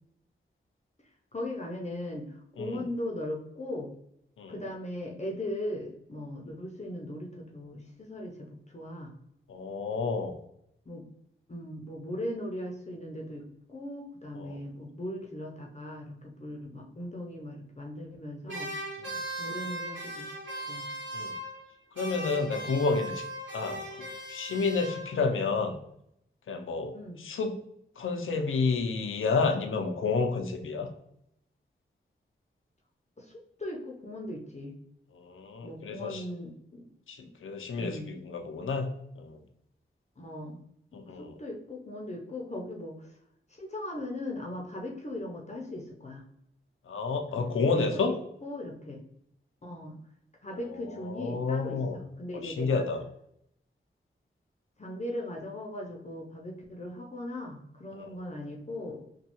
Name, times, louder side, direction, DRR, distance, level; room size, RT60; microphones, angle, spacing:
voice 1, 1.3-3.9 4.5-9.1 10.9-11.1 11.5-18.7 19.4-20.2 20.7-20.9 26.9-27.2 33.2-34.7 35.6-36.8 37.8-38.1 40.2-40.6 40.9-43.2 43.5-46.2 47.3-48.2 48.4-49.0 49.6-50.0 50.4-52.9 54.8-59.1, left 1 dB, 35° left, -1 dB, 0.6 m, -38 dB
voice 2, 9.5-10.3 14.4-14.6 19.0-19.1 21.1-21.4 22.0-23.2 23.5-25.7 26.5-27.6 28.0-30.9 35.2-36.2 37.1-38.9 39.2-39.4 40.9-41.3 46.9-48.1 51.0-52.0 52.3-53.0 57.9-58.1, left 4 dB, 80° left, 5 dB, 0.5 m, -30 dB
sound 1, 18.5-21.7 21.9-25.3, right 1 dB, 65° right, 1.2 m, -38 dB
3.1 x 2.2 x 2.9 m, 0.75 s
cardioid pair, 60°, 20 cm